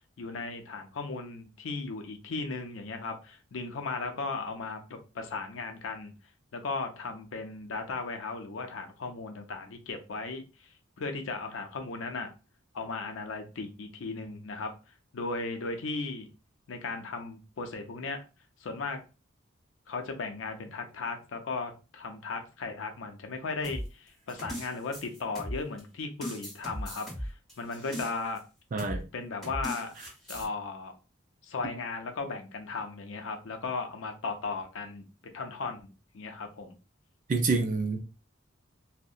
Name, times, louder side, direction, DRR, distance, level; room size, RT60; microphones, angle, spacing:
voice 1, 0.2-6.1 6.5-10.7 11.0-12.3 12.7-14.7 15.1-16.3 16.7-18.2 18.6-19.0 19.9-28.4 29.1-30.0 30.3-30.9 31.4-36.8, left 3 dB, 80° left, 0.5 m, -36 dB
sound 1, 23.6-25.8 26.2-28.4 28.8-29.0 29.4-30.5, equal, ahead, 1.4 m, -38 dB
voice 2, 28.7-29.0 37.3-38.0, right 3 dB, 40° right, 0.4 m, -27 dB
2.7 x 2.0 x 2.3 m
head